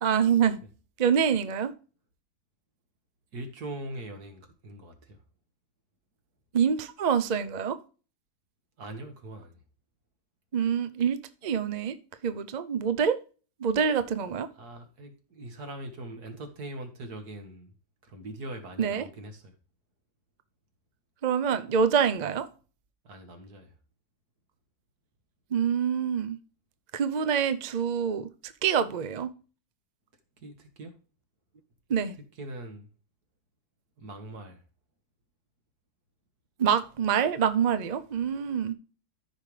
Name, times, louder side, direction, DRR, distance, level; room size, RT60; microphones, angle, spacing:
voice 1, 0.0-0.6 1.0-1.7 6.5-7.8 10.5-12.0 12.2-13.2 13.6-14.5 18.8-19.0 21.2-22.5 25.5-26.4 26.9-29.3 31.9-32.2 36.6-38.7, right 7 dB, 55° right, 0.4 m, -26 dB
voice 2, 3.3-5.2 8.8-9.6 14.5-17.7 18.0-19.5 23.0-23.7 30.4-30.9 32.4-32.9 34.0-34.6, right 1 dB, 70° right, 2.2 m, -41 dB
14.0 x 5.5 x 3.3 m
omnidirectional pair, 1.7 m